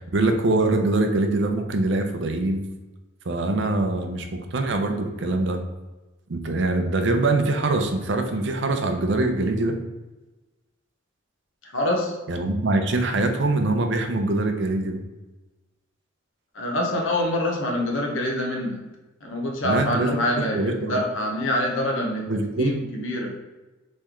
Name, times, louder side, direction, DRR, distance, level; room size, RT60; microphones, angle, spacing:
voice 1, 0.0-2.6 3.3-5.6 6.3-9.7 12.3-15.0 19.6-21.0 22.3-22.7, right 2 dB, 60° right, 5 dB, 0.5 m, -23 dB
voice 2, 11.6-12.1 16.5-18.8 19.2-22.3 22.6-23.3, left 1 dB, 70° left, 0 dB, 1.0 m, -25 dB
4.3 x 3.2 x 3.6 m, 1.1 s
head